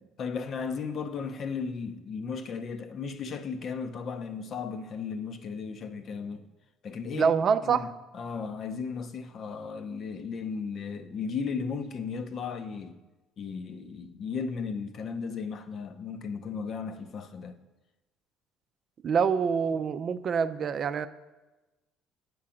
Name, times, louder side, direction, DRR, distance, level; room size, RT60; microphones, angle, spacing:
voice 1, 0.0-6.5 6.8-7.3 7.6-13.0 13.4-17.6, left 5 dB, 50° left, 0.6 m, -35 dB
voice 2, 7.1-7.9 19.0-21.1, right 6 dB, 50° right, 0.4 m, -26 dB
7.5 x 4.6 x 6.2 m
hypercardioid pair, 65°, 0 cm